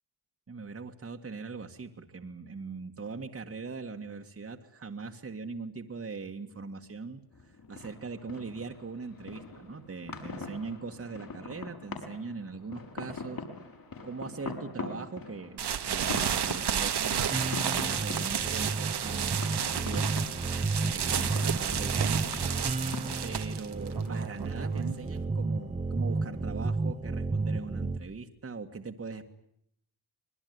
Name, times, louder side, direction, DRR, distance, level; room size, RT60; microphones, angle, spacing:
voice 1, 0.5-13.4 14.0-20.1 20.8-22.4 23.2-29.3, right 4 dB, 35° right, 4 dB, 1.9 m, -41 dB
sound 1, 7.3-26.6, left 3 dB, 55° left, 6.4 m, -44 dB
sound 2, 15.6-25.2, right 8 dB, 75° right, 1.8 m, -32 dB
sound 3, 17.3-28.0, right 3 dB, 20° right, 1.1 m, -32 dB
26.0 x 21.5 x 9.6 m, 0.73 s
wide cardioid pair, 120°, 40 cm